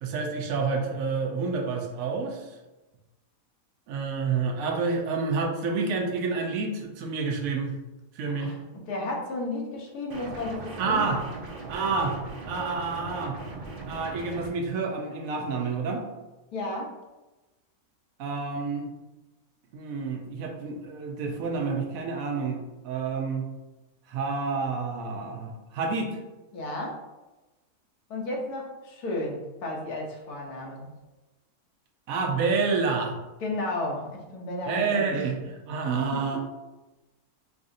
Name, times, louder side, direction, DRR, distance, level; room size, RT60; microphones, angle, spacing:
voice 1, 0.0-2.5 3.9-7.8 8.1-8.5 10.8-11.2 11.7-12.2 12.5-13.4 13.9-16.0 18.2-18.9 19.7-22.6 22.8-23.5 24.1-26.2 32.1-33.2 34.7-36.4, right 4 dB, 70° right, 1 dB, 1.1 m, -29 dB
voice 2, 8.3-11.1 16.5-16.9 26.5-27.0 28.1-30.9 33.4-35.1, left 2 dB, 85° left, -1 dB, 1.3 m, -33 dB
sound 1, 10.1-14.5, right 3 dB, 50° right, 0.7 m, -39 dB
4.8 x 2.5 x 2.6 m, 1.1 s
omnidirectional pair, 1.6 m